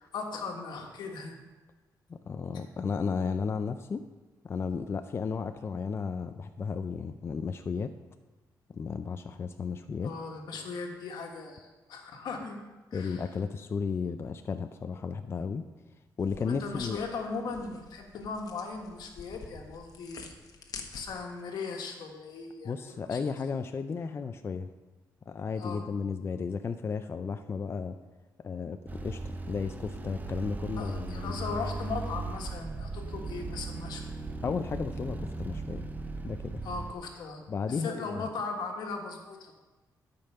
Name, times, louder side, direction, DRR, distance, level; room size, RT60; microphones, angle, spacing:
voice 1, 0.0-1.3 10.0-12.6 12.9-13.3 16.4-20.4 20.9-23.2 25.6-25.8 30.8-34.0 36.6-37.4 37.7-39.5, left 4 dB, 80° left, 2 dB, 1.5 m, -38 dB
voice 2, 2.1-4.0 4.4-7.9 8.7-10.1 12.9-15.7 16.2-17.0 22.6-24.7 25.3-28.0 28.4-31.4 34.4-35.9 36.2-36.6 37.5-38.2, left 5 dB, 35° left, 9 dB, 0.4 m, -34 dB
sound 1, 16.2-21.4, left 4 dB, 60° left, 1.1 m, -48 dB
sound 2, 28.9-36.9, right 3 dB, 25° right, 0.6 m, -37 dB
12.5 x 5.3 x 5.6 m, 1.2 s
cardioid pair, 120°, 7 cm